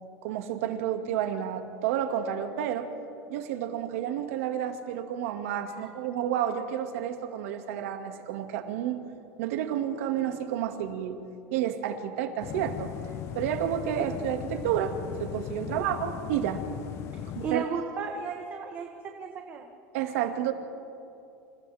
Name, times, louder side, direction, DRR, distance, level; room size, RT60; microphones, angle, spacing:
voice 1, 0.2-2.9 3.3-9.0 9.4-11.2 11.5-12.9 13.3-16.6 17.3-17.6 19.9-20.5, right 10 dB, 75° right, 5 dB, 2.2 m, -30 dB
sound 1, 12.4-17.6, left 11 dB, 35° left, 0.7 m, -38 dB
voice 2, 17.1-19.7, right 6 dB, 25° right, 3 dB, 1.3 m, -35 dB
29.0 x 28.5 x 3.6 m, 2.7 s
supercardioid pair, 165°, 7 cm